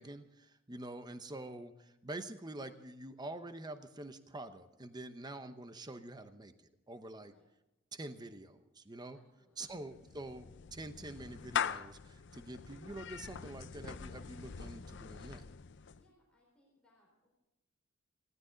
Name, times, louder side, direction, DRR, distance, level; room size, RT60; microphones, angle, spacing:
voice 1, 0.0-7.3 7.9-9.2 9.6-15.4, right 2 dB, 20° right, 9 dB, 0.9 m, -46 dB
voice 2, 7.2-7.5 9.1-9.8 15.9-17.3, left 1 dB, 5° left, -3 dB, 4.2 m, -71 dB
Clapping / Meow, 9.6-16.1, left 7 dB, 60° left, 0.6 m, -42 dB
20.0 x 16.5 x 3.9 m, 0.93 s
head